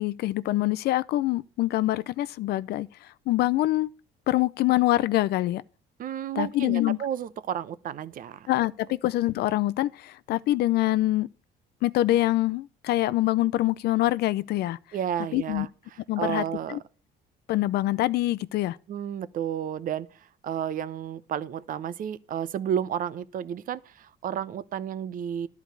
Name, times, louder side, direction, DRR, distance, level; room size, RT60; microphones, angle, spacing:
voice 1, 0.0-2.9 3.3-3.9 4.3-5.6 6.4-7.0 8.5-11.3 11.8-14.8 15.3-15.7 16.1-16.8 17.5-18.8, left 16 dB, 70° left, 0.5 m, -25 dB
voice 2, 6.0-8.5 14.9-16.8 18.9-20.1 20.4-25.5, right 9 dB, 55° right, 0.7 m, -32 dB
11.0 x 4.7 x 8.1 m
cardioid pair, 110°, 17 cm